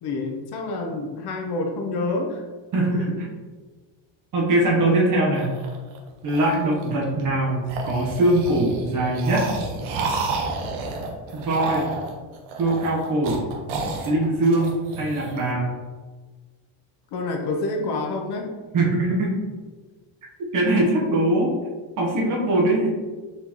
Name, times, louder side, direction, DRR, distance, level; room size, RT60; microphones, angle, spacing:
voice 1, 0.0-2.4 2.9-3.2 17.1-18.5, left 2 dB, 55° left, 2 dB, 0.7 m, -28 dB
voice 2, 2.7-3.3 4.3-5.5 6.2-9.6 11.3-11.9 12.6-13.5 14.0-15.7 18.7-19.4 20.5-21.5 22.0-22.9, right 1 dB, 40° right, -2 dB, 1.0 m, -22 dB
sound 1, 5.4-7.2 7.6-15.5, right 3 dB, 80° right, 0.9 m, -31 dB
4.4 x 3.9 x 2.9 m, 1.4 s
cardioid pair, 165°, 47 cm